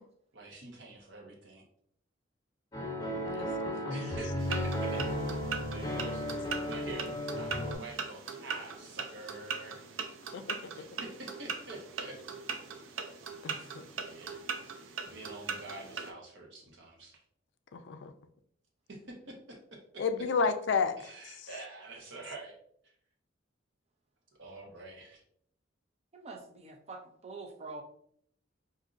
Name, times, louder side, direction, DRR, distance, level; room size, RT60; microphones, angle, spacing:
voice 1, 0.3-1.6 3.9-6.3 6.6-9.8 10.7-12.2 14.0-14.4 15.0-17.2 18.9-20.3 21.0-22.6 24.4-25.2, right 2 dB, 65° right, 0 dB, 1.0 m, -47 dB
sound 1, 2.7-7.7, equal, 20° left, 0.9 m, -34 dB
voice 2, 3.4-4.1 10.3-10.6 13.4-13.8 17.9-18.1 20.0-20.9, left 5 dB, 65° left, 9 dB, 0.4 m, -31 dB
antique clock tick, 4.4-16.1, right 5 dB, 90° right, 0.5 m, -40 dB
voice 3, 26.1-27.8, right 3 dB, 35° right, 3 dB, 0.5 m, -45 dB
5.0 x 2.7 x 2.5 m, 0.66 s
head